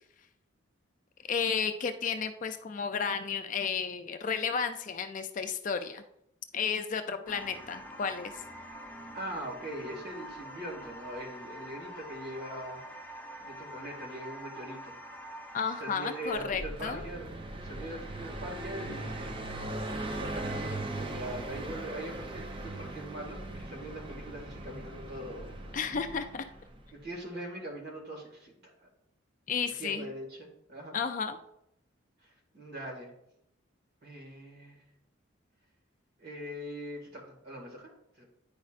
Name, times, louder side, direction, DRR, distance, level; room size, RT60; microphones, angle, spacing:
voice 1, 1.3-6.0 6.5-8.3 15.5-17.1 25.7-26.4 29.5-30.1 30.9-31.4, left 6 dB, 40° left, 8 dB, 0.4 m, -32 dB
sound 1, 7.3-16.5, equal, 10° left, 0.7 m, -45 dB
voice 2, 9.1-12.8 13.4-14.9 15.8-17.3 17.6-19.6 19.9-25.5 26.9-28.5 28.8-28.9 29.7-31.0 32.2-33.1 34.0-34.8 36.2-38.2, right 1 dB, 50° right, 0 dB, 1.8 m, -42 dB
Car passing by, 16.3-26.9, right 2 dB, 25° right, 0.5 m, -39 dB
9.4 x 5.2 x 2.5 m, 0.78 s
head